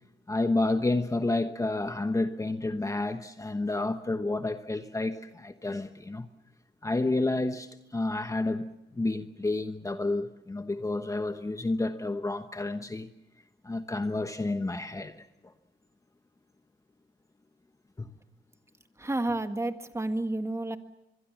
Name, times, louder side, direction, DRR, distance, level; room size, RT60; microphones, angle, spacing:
voice 1, 0.3-6.3 6.8-13.1 13.6-15.3 18.0-18.1, left 2 dB, 15° left, 1.1 m, -30 dB
voice 2, 19.0-20.8, right 2 dB, 15° right, 1.7 m, -30 dB
25.0 x 22.5 x 7.3 m
cardioid pair, 90°, 20 cm